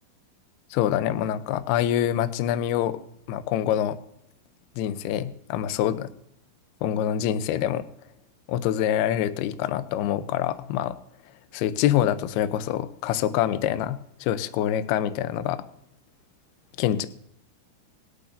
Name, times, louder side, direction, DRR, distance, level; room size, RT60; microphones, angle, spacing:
voice 1, 0.7-3.0 3.3-4.0 4.8-6.1 6.8-7.8 8.5-11.0 11.5-15.6 16.8-17.1, left 11 dB, 85° left, 11 dB, 2.2 m, -25 dB
23.5 x 8.6 x 2.7 m, 0.77 s
omnidirectional pair, 5.6 m